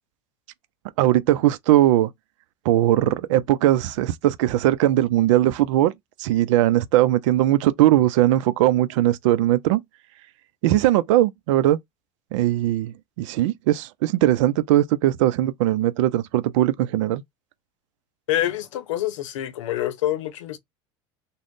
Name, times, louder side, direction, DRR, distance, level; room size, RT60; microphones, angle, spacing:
voice 1, 1.0-2.1 2.6-5.9 6.2-9.8 10.6-11.8 12.3-17.2, right 14 dB, 80° right, 0.5 m, -19 dB
voice 2, 18.3-20.6, left 13 dB, 85° left, 0.7 m, -26 dB
3.7 x 2.2 x 3.6 m
supercardioid pair, 95°, 16 cm